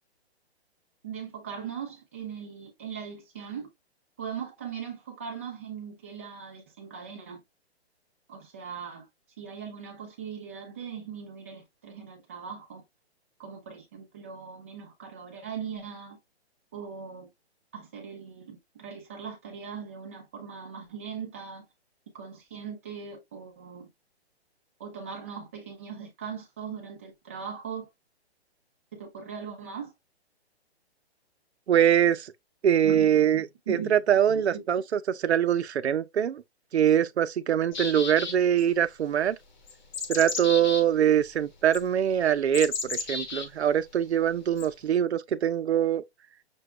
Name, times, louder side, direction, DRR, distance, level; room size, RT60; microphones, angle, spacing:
voice 1, 1.0-3.7 4.2-7.4 8.3-9.0 9.4-12.8 13.4-16.2 16.7-17.3 17.7-21.7 22.1-23.9 24.8-27.9 28.9-29.9 32.8-34.0 34.3-34.6, right 7 dB, 15° right, 0.5 m, -39 dB
voice 2, 31.7-32.3 32.6-36.4 36.7-39.4 40.1-46.0, right 9 dB, 80° right, 0.7 m, -23 dB
sound 1, 37.7-38.6 39.7-40.8 41.7-41.8 42.5-43.5 44.6-44.7, left 4 dB, 45° left, 1.0 m, -33 dB
6.1 x 2.3 x 3.2 m
hypercardioid pair, 170°, 33 cm